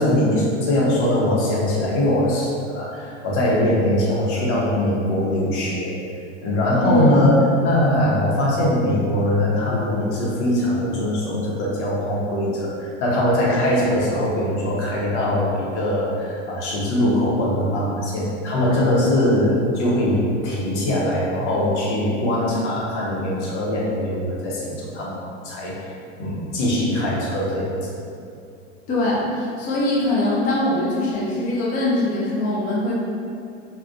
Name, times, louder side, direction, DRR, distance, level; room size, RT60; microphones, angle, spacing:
voice 1, 0.0-6.0 6.4-25.9 26.2-27.9, left 1 dB, 70° left, -4 dB, 0.8 m, -21 dB
voice 2, 6.8-7.2 28.9-33.0, left 1 dB, 25° left, -5 dB, 0.4 m, -22 dB
2.4 x 2.1 x 2.4 m, 2.5 s
hypercardioid pair, 105°, 36 cm